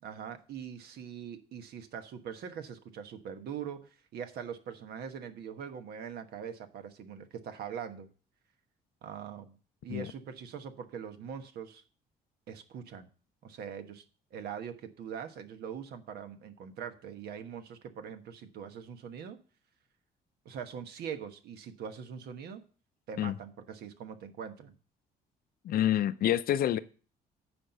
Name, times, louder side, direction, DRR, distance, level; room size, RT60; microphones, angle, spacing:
voice 1, 0.0-8.1 9.0-9.6 9.8-11.8 12.5-13.1 13.4-14.0 14.3-19.4 20.4-22.6 23.1-24.7, right 7 dB, 75° right, 1.2 m, -42 dB
voice 2, 25.6-26.8, left 11 dB, 65° left, 0.6 m, -27 dB
9.9 x 4.5 x 6.7 m
cardioid pair, 90°, 17 cm